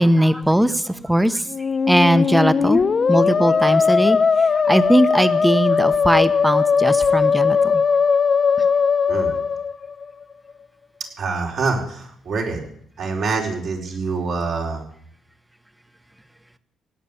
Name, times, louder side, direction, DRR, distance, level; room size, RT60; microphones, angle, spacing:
voice 1, 0.0-1.5 1.9-2.8 3.1-7.8 8.6-8.7, right 1 dB, 5° right, 12 dB, 1.0 m, -19 dB
Musical instrument, 1.5-10.2, left 5 dB, 40° left, 0.7 m, -19 dB
voice 2, 11.2-12.6 13.0-14.8, right 4 dB, 65° right, 0 dB, 4.8 m, -25 dB
17.0 x 9.3 x 8.6 m, 0.65 s
cardioid pair, 90°, 0 cm